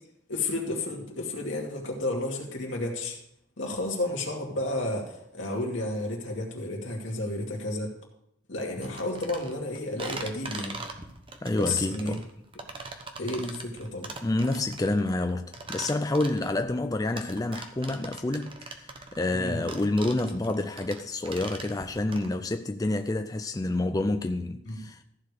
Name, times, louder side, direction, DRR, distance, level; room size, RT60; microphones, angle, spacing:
voice 1, 0.3-3.2 3.6-8.0 8.5-10.8 11.5-12.1 13.2-14.1 19.3-19.6 24.6-24.8, left 2 dB, 80° left, 2.4 m, -32 dB
sound 1, 8.8-22.3, right 3 dB, 25° right, 1.0 m, -41 dB
voice 2, 11.4-12.2 12.8-13.0 14.2-18.9 19.1-25.0, left 2 dB, 20° left, 0.4 m, -28 dB
14.5 x 5.0 x 6.8 m
head